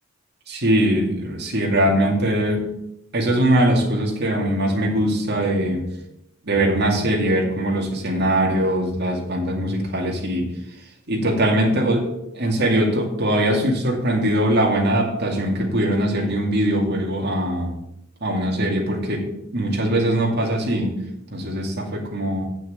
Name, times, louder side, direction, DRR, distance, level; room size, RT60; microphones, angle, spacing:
voice 1, 0.5-2.7 3.1-5.9 6.4-10.5 11.1-12.1 12.3-17.7 18.2-21.0 21.3-22.4, right 1 dB, 50° right, 0 dB, 2.4 m, -21 dB
8.4 x 6.3 x 7.2 m, 0.82 s
head